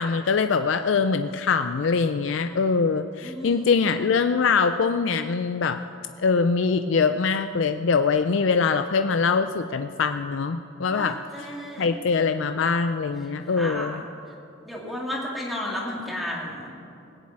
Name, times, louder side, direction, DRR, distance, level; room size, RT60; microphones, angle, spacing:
voice 1, 0.0-5.8 6.2-14.0, left 5 dB, 70° left, 9 dB, 0.5 m, -23 dB
voice 2, 3.2-3.7 10.9-11.9 13.5-14.0 14.7-16.7, left 1 dB, ahead, -4 dB, 2.5 m, -33 dB
19.5 x 7.4 x 8.7 m, 2.7 s
head